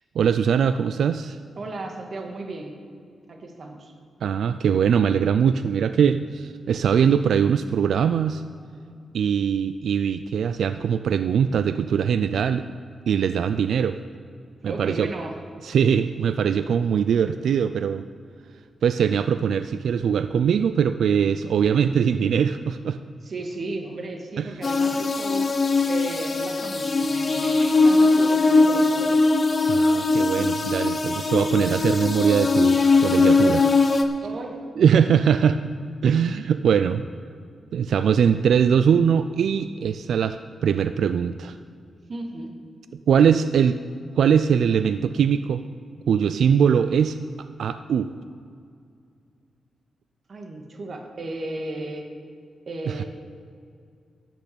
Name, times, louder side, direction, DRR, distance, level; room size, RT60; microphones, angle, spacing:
voice 1, 0.2-1.4 4.2-8.4 9.1-12.6 13.1-14.0 14.6-15.1 15.6-18.0 18.8-23.0 24.4-24.5 29.7-33.7 34.8-35.6 36.0-37.1 37.7-40.4 40.6-41.6 43.1-43.8 44.1-45.6 46.1-47.2 47.6-48.1 52.9-53.0, right 7 dB, 80° right, 11 dB, 0.3 m, -21 dB
voice 2, 1.6-2.8 3.3-3.9 14.6-15.4 23.2-25.5 25.9-29.3 34.2-34.6 42.1-42.5 50.3-52.0 52.7-53.0, right 2 dB, 50° right, 3 dB, 1.7 m, -34 dB
sound 1, 24.6-34.0, left 3 dB, 40° left, 0.9 m, -20 dB
12.0 x 6.1 x 8.5 m, 2.3 s
cardioid pair, 110°, 0 cm